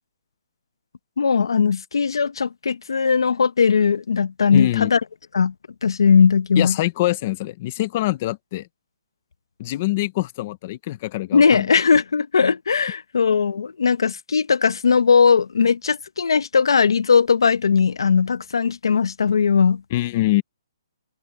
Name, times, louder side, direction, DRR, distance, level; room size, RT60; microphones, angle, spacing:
voice 1, 1.2-5.0 5.3-5.5 5.8-6.8 11.3-19.8, left 6 dB, 80° left, 1.0 m, -18 dB
voice 2, 4.5-4.9 6.6-8.7 9.6-11.7 19.9-20.4, left 16 dB, 20° left, 0.7 m, -24 dB
hypercardioid pair, 180°, 2 cm